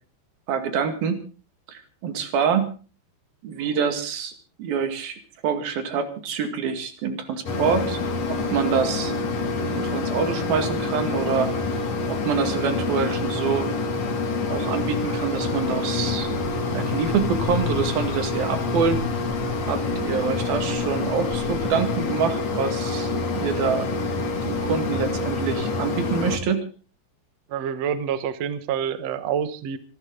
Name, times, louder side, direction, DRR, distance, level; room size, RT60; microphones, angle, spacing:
voice 1, 0.5-1.2 1.7-2.7 3.4-4.3 4.6-8.0 8.3-9.1 9.8-11.5 12.1-13.7 14.5-16.3 16.7-19.0 19.7-23.9 24.4-26.7, right 6 dB, 60° right, 8 dB, 3.7 m, -26 dB
Mechanisms, 7.5-26.4, left 3 dB, 45° left, 3.0 m, -26 dB
voice 2, 27.5-29.8, right 8 dB, 80° right, 12 dB, 1.5 m, -27 dB
26.5 x 13.0 x 3.9 m, 0.37 s
omnidirectional pair, 5.0 m